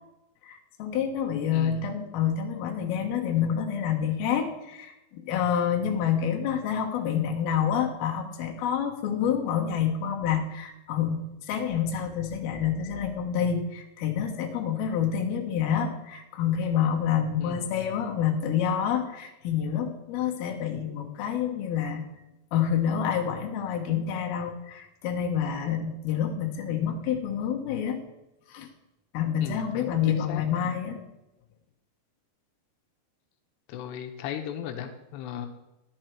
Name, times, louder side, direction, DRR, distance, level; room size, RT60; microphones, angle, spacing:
voice 1, 0.4-22.0 22.5-28.0 28.5-28.7 29.1-31.0, left 8 dB, 70° left, 1 dB, 2.9 m, -28 dB
voice 2, 1.5-1.9 17.4-17.6 29.4-30.0 30.3-30.4 33.7-35.5, left 10 dB, 90° left, 6 dB, 2.9 m, -36 dB
11.5 x 7.7 x 4.5 m, 0.95 s
omnidirectional pair, 4.8 m